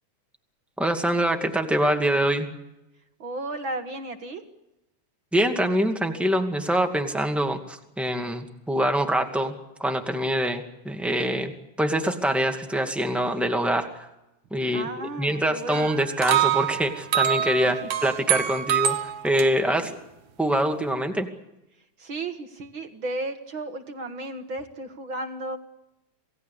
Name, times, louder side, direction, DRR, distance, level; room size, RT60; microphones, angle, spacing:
voice 1, 0.8-2.5 5.3-11.5 11.8-13.9 14.5-19.0 19.2-19.9 20.4-21.3, right 1 dB, ahead, 4 dB, 1.6 m, -24 dB
voice 2, 3.2-4.4 14.7-15.9 17.8-17.9 19.6-20.0 22.0-25.6, right 2 dB, 45° right, 7 dB, 1.8 m, -34 dB
sound 1, 15.7-19.5, right 10 dB, 70° right, 2.6 m, -25 dB
28.0 x 18.5 x 8.4 m, 0.93 s
omnidirectional pair, 3.6 m